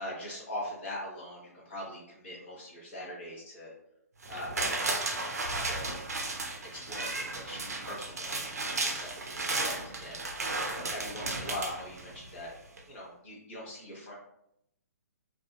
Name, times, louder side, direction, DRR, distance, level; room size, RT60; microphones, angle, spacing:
voice 1, 0.0-3.7 4.3-6.0 6.7-12.5 12.9-14.1, left 1 dB, 45° left, -4 dB, 1.2 m, -42 dB
sound 1, 4.2-12.4 12.8-12.9, right 2 dB, 70° right, 0.5 m, -34 dB
2.7 x 2.6 x 2.2 m, 0.78 s
figure-of-eight pair, 130°, 9 cm